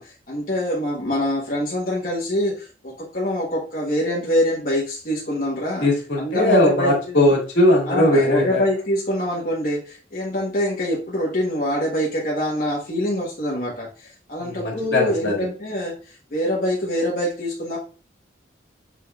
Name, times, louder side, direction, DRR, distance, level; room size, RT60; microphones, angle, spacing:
voice 1, 0.0-5.8 6.2-7.2 7.8-17.8, equal, 50° left, -5 dB, 1.2 m, -25 dB
voice 2, 5.8-8.6 14.4-15.4, left 1 dB, 75° left, -2 dB, 2.2 m, -19 dB
6.7 x 3.4 x 2.4 m, 0.36 s
head